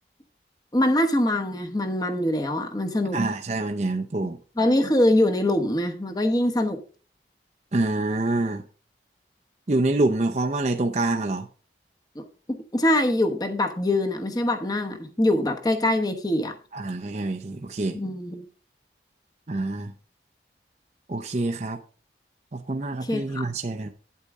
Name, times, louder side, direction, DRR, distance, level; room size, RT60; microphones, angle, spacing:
voice 1, 0.7-3.2 4.6-6.8 12.1-16.5 17.9-18.5 23.1-23.4, left 1 dB, 20° left, 1.0 m, -23 dB
voice 2, 3.1-4.4 7.7-8.6 9.7-11.5 16.7-18.0 19.5-19.9 21.1-21.8 22.5-23.9, right 2 dB, 40° right, 0.6 m, -26 dB
9.6 x 8.3 x 3.6 m
head